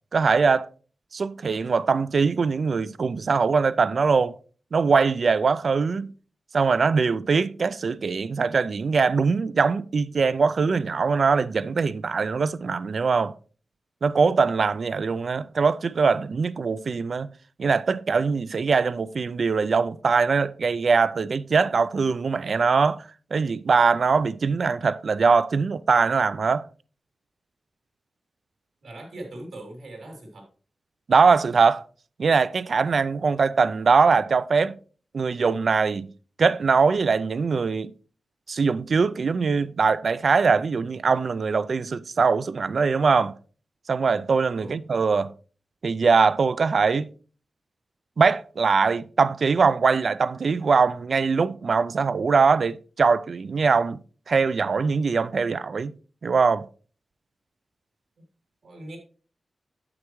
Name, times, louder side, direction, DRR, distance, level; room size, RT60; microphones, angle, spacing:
voice 1, 0.1-0.7 1.1-4.3 4.7-6.1 6.5-13.3 14.0-17.3 17.6-23.0 23.3-26.7 31.1-31.8 32.2-34.8 35.1-36.1 36.4-37.9 38.5-43.3 43.9-45.3 45.8-47.1 48.2-54.0 54.3-55.9 56.2-56.7, right 5 dB, 60° right, 0.3 m, -22 dB
voice 2, 28.8-30.5 44.5-44.8 58.6-59.0, right 1 dB, 85° right, 3.1 m, -40 dB
9.4 x 7.7 x 3.1 m
wide cardioid pair, 115°, 0 cm